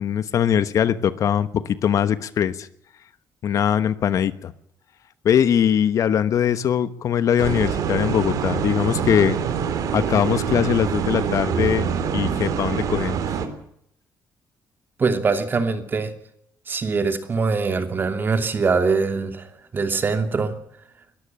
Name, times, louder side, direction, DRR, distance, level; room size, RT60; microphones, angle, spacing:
voice 1, 0.0-2.7 3.4-4.5 5.2-9.4 9.9-13.2, left 9 dB, 55° left, 14 dB, 1.2 m, -21 dB
sound 1, 7.4-13.5, right 7 dB, 60° right, 3.4 m, -25 dB
voice 2, 15.0-16.1 16.7-20.5, right 4 dB, 30° right, 8 dB, 2.8 m, -23 dB
21.5 x 14.0 x 8.7 m, 0.72 s
cardioid pair, 135°, 7 cm